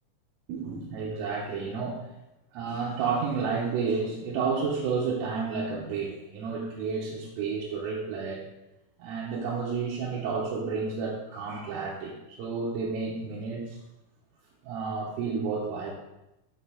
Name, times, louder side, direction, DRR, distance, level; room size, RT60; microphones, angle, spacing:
voice 1, 0.5-2.1 2.5-8.4 9.0-13.8 14.6-15.9, right 5 dB, 85° right, -5 dB, 3.7 m, -31 dB
8.0 x 6.6 x 3.9 m, 0.93 s
omnidirectional pair, 5.9 m